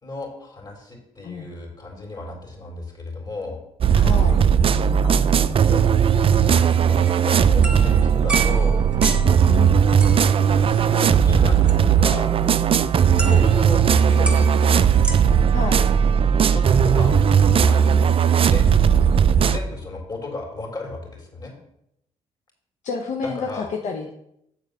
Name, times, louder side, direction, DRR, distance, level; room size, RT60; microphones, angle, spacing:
voice 1, 0.0-3.6 5.0-5.8 6.5-8.8 10.6-12.3 13.2-14.9 16.5-17.2 17.6-18.0 18.4-18.6 19.5-21.5 23.2-23.7, left 2 dB, 30° left, 0 dB, 4.1 m, -34 dB
sound 1, 3.8-19.6, right 7 dB, 45° right, 0.5 m, -17 dB
voice 2, 3.9-4.4 9.5-9.8 13.1-13.5 15.5-15.9 22.8-24.1, left 5 dB, 60° left, 2 dB, 1.0 m, -30 dB
sound 2, 6.9-9.5 10.0-10.4 11.7-11.8 13.2-13.8 14.3-15.2, right 3 dB, 10° right, 1.3 m, -31 dB
7.6 x 4.9 x 6.8 m, 0.77 s
cardioid pair, 75°, 13 cm